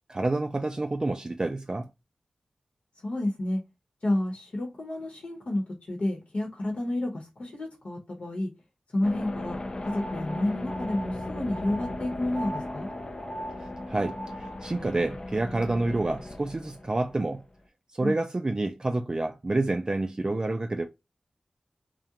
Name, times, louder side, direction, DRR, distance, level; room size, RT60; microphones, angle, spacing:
voice 1, 0.1-1.9 13.9-17.4 17.9-20.8, right 2 dB, 35° right, 0.3 m, -28 dB
voice 2, 3.0-3.6 4.0-8.5 8.9-12.9 18.0-18.2, left 1 dB, 70° left, 0.9 m, -30 dB
sound 1, 9.0-17.6, left 2 dB, 40° left, 0.4 m, -37 dB
sound 2, 9.8-14.7, right 1 dB, 10° right, 0.8 m, -41 dB
2.4 x 2.1 x 2.8 m
cardioid pair, 45°, 2 cm